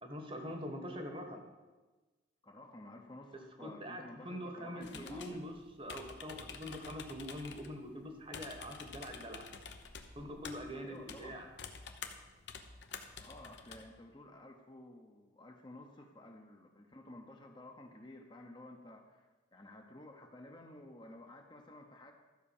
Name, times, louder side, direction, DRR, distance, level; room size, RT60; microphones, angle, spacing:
voice 1, 0.0-1.4 3.6-9.5 10.1-11.5, equal, 30° right, 4 dB, 1.2 m, -44 dB
voice 2, 2.4-5.3 10.8-11.4 13.2-22.1, left 1 dB, 25° left, 3 dB, 0.9 m, -53 dB
sound 1, 4.8-13.9, left 5 dB, 70° left, 0.9 m, -49 dB
13.0 x 5.4 x 7.2 m, 1.2 s
head